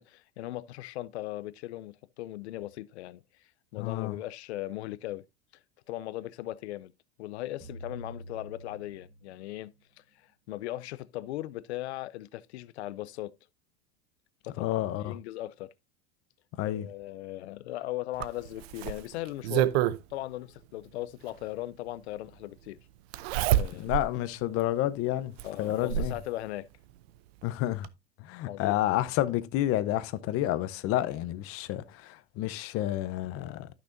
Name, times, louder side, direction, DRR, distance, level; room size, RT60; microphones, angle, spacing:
voice 1, 0.0-5.2 5.9-6.9 7.2-10.0 10.5-13.3 14.5-15.7 16.7-22.8 23.5-23.9 25.4-26.7 28.5-28.8, left 15 dB, 90° left, 0.6 m, -38 dB
voice 2, 3.8-4.2 14.6-15.2 16.5-16.9 23.8-26.1 27.4-27.9 28.2-33.7, left 14 dB, 45° left, 0.8 m, -30 dB
sound 1, 7.6-9.8, equal, 40° right, 4.3 m, -47 dB
Zipper (clothing), 18.2-20.0 21.4-21.5 23.1-24.1 24.6-24.7 25.4-26.2 27.4-27.5 27.8-27.9, right 13 dB, 70° right, 0.7 m, -28 dB
13.5 x 6.1 x 2.6 m
supercardioid pair, 125°, 32 cm